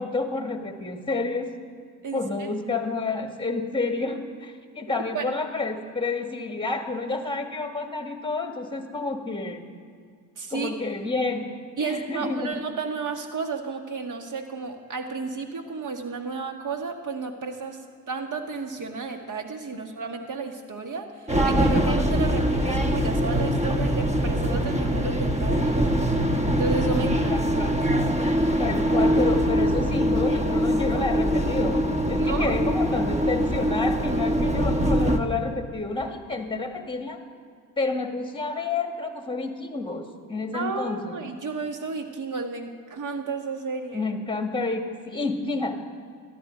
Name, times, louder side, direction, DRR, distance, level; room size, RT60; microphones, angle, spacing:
voice 1, 0.0-1.5 2.1-9.6 10.5-11.5 11.8-12.6 27.6-27.7 28.2-37.2 37.8-41.1 43.9-45.7, left 3 dB, 10° left, 5 dB, 1.6 m, -29 dB
voice 2, 2.0-2.5 5.1-5.3 10.4-10.7 11.8-25.9 26.6-27.5 32.2-32.6 40.5-44.0, right 4 dB, 45° right, 5 dB, 1.7 m, -32 dB
sound 1, 21.3-35.2, equal, 15° right, 1.1 m, -23 dB
13.5 x 12.0 x 5.1 m, 2.1 s
supercardioid pair, 65°, 42 cm